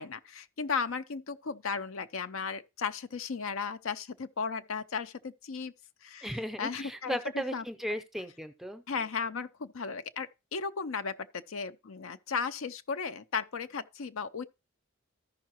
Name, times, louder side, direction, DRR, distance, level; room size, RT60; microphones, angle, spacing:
voice 1, 0.0-5.7 6.0-7.6 8.9-14.4, left 5 dB, 80° left, 0.6 m, -35 dB
voice 2, 6.2-8.8, equal, ahead, 0.6 m, -36 dB
13.5 x 5.6 x 2.9 m
head